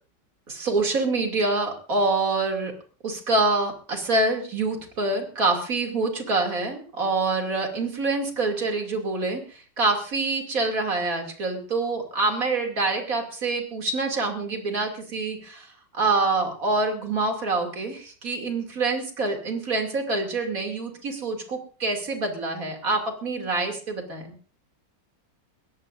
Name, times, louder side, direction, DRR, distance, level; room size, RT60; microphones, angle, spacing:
voice 1, 0.5-2.7 3.0-15.7 15.9-24.3, right 3 dB, 50° right, 3 dB, 3.1 m, -26 dB
22.5 x 17.0 x 2.6 m, 0.39 s
omnidirectional pair, 1.9 m